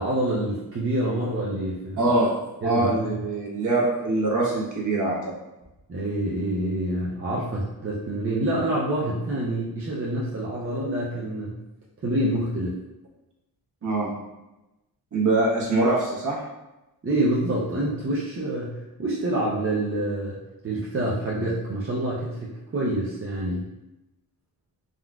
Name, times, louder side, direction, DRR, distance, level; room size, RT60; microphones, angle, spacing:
voice 1, 0.0-2.0 2.6-3.1 5.9-11.6 12.0-12.8 17.0-20.4 20.6-23.7, right 1 dB, 35° right, -6 dB, 0.6 m, -27 dB
voice 2, 2.0-2.3 2.6-5.3 13.8-14.1 15.1-16.4, right 2 dB, 50° right, -5 dB, 1.1 m, -23 dB
3.7 x 2.4 x 2.3 m, 0.99 s
cardioid pair, 85°, 39 cm